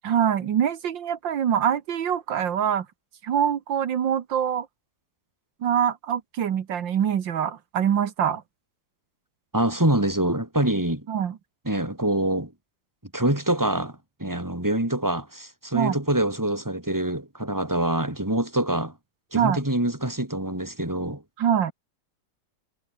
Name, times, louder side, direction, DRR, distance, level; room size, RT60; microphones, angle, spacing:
voice 1, 0.0-2.9 3.2-4.7 5.6-8.4 11.1-11.4 15.7-16.0 19.3-19.6 21.4-21.7, right 9 dB, 85° right, 2.1 m, -24 dB
voice 2, 9.5-11.1 11.6-12.5 13.1-18.9 19.3-21.2, right 1 dB, 10° right, 4.0 m, -25 dB
omnidirectional pair, 2.0 m